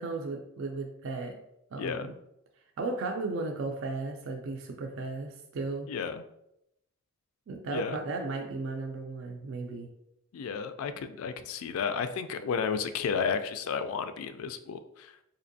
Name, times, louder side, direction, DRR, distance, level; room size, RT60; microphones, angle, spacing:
voice 1, 0.0-1.4 1.7-2.1 2.8-5.9 7.5-9.9, right 3 dB, 60° right, 2 dB, 0.4 m, -35 dB
voice 2, 1.8-2.1 5.9-6.2 7.7-8.0 10.3-15.1, left 6 dB, 75° left, 10 dB, 0.3 m, -32 dB
4.2 x 2.6 x 2.6 m, 0.82 s
head